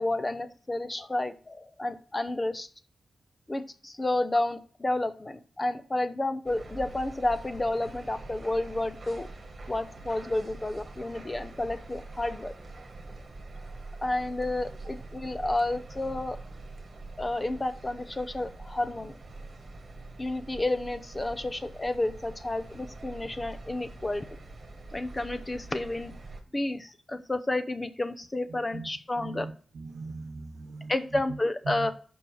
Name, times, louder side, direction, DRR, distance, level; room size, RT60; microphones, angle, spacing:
voice 1, 0.0-2.7 3.5-9.3 9.7-12.5 14.0-16.4 17.2-19.1 20.2-24.3 24.9-26.1 26.5-29.5 30.9-31.9, left 2 dB, 20° left, 10 dB, 0.7 m, -31 dB
sound 1, 6.5-26.4, right 2 dB, 40° right, 1.7 m, -44 dB
voice 2, 28.5-28.9 29.1-31.4 31.6-31.9, right 4 dB, 85° right, 9 dB, 1.0 m, -40 dB
5.7 x 5.1 x 6.5 m, 0.43 s
wide cardioid pair, 105°, 0 cm